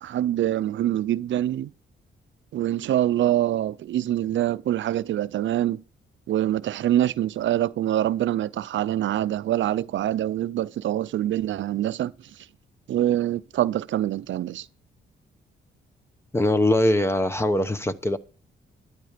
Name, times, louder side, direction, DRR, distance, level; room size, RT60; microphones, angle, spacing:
voice 1, 0.0-1.7 2.5-5.8 6.3-12.5 12.9-14.7, right 12 dB, 70° right, 0.5 m, -25 dB
voice 2, 16.3-18.2, left 1 dB, 15° left, 1.0 m, -22 dB
12.5 x 11.0 x 5.0 m
cardioid pair, 100°, 20 cm